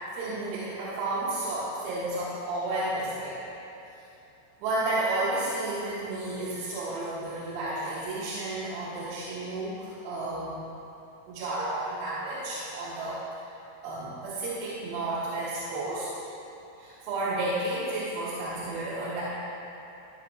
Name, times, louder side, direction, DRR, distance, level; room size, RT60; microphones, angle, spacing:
voice 1, 0.1-3.4 4.6-10.6 11.3-13.2 13.8-16.1 16.8-19.2, right 2 dB, 85° right, -10 dB, 3.8 m, -32 dB
14.5 x 6.9 x 2.4 m, 2.9 s
omnidirectional pair, 5.9 m